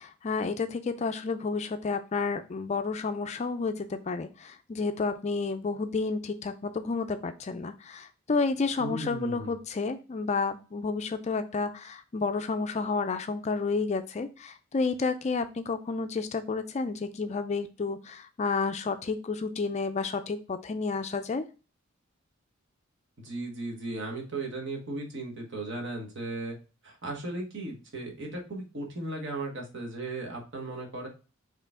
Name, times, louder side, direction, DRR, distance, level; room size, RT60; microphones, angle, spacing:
voice 1, 0.0-21.5, left 4 dB, 30° left, 9 dB, 0.4 m, -31 dB
voice 2, 8.8-9.5 23.2-26.5 26.8-31.1, right 2 dB, 60° right, 1 dB, 1.3 m, -36 dB
4.7 x 3.1 x 3.5 m, 0.32 s
head